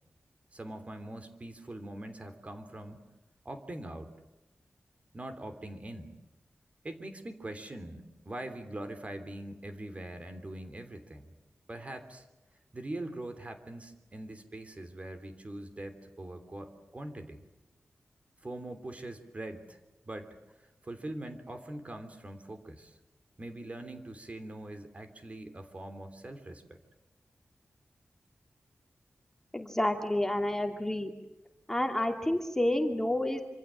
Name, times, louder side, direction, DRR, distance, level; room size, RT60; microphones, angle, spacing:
voice 1, 0.5-3.0 3.4-4.1 5.1-6.2 6.8-11.3 11.7-12.3 12.7-17.4 18.4-19.8 20.1-23.0 23.4-26.8, right 1 dB, 30° right, 7 dB, 3.3 m, -42 dB
voice 2, 29.5-31.1 31.7-33.4, left 1 dB, 10° left, 4 dB, 2.7 m, -29 dB
26.5 x 26.0 x 7.6 m, 0.96 s
wide cardioid pair, 130°, 4 cm